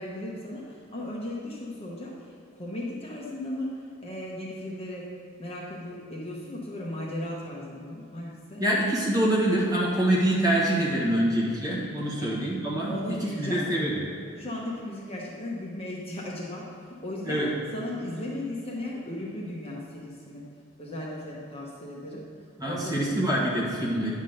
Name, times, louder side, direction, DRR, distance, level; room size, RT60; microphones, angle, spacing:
voice 1, 0.0-5.1 5.4-8.6 12.2-12.3 12.9-13.8 14.4-17.4 17.7-20.5 20.8-22.2 22.6-23.1, left 1 dB, 30° left, -4 dB, 1.0 m, -36 dB
voice 2, 8.6-13.9 17.2-17.5 22.6-24.2, right 1 dB, 15° right, -5 dB, 1.6 m, -25 dB
9.8 x 3.7 x 6.4 m, 2.4 s
head